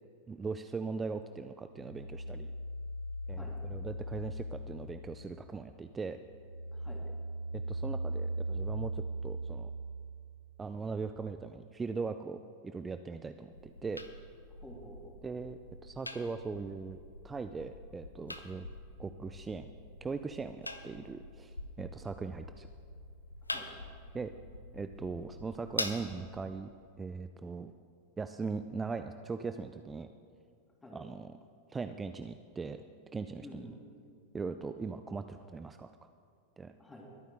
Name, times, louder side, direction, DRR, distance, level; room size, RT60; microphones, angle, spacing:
voice 1, 0.3-2.5 3.3-6.2 7.5-9.7 10.6-14.0 15.2-17.0 17.2-18.7 19.0-19.7 20.0-22.7 24.1-24.3 24.7-26.7 27.0-27.7 28.2-30.1 30.9-31.4 31.7-32.8 33.1-33.7 34.3-35.9 36.6-36.7, right 4 dB, 15° right, 9 dB, 0.4 m, -40 dB
sound 1, 1.8-5.6 6.0-10.6, right 1 dB, 85° right, 0.6 m, -39 dB
sound 2, 13.5-26.5, left 2 dB, 85° left, 0.7 m, -45 dB
voice 2, 14.6-15.1 23.5-23.7 30.8-31.0 33.4-33.8 36.8-37.1, left 1 dB, 10° left, -1 dB, 2.9 m, -50 dB
22.5 x 9.2 x 3.8 m, 2.3 s
figure-of-eight pair, 90°, 0 cm